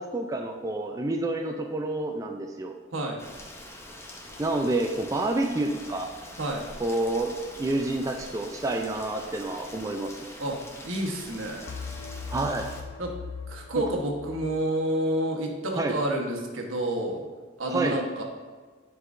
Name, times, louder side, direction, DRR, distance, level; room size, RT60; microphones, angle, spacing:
voice 1, 0.0-2.7 4.4-6.1 6.8-7.3 7.6-10.3 12.3-12.7 13.8-13.9 15.7-15.9 17.7-18.0, right 2 dB, 15° right, 3 dB, 0.3 m, -28 dB
Rain, 3.2-12.8, left 1 dB, 15° left, 0.6 m, -44 dB
sound 1, 4.3-5.2 11.7-14.7, left 5 dB, 80° left, 0.5 m, -40 dB
voice 2, 10.8-11.7 13.0-13.2 13.5-17.2 17.6-18.2, right 1 dB, 80° right, 0 dB, 1.1 m, -29 dB
9.6 x 4.7 x 2.5 m, 1.5 s
head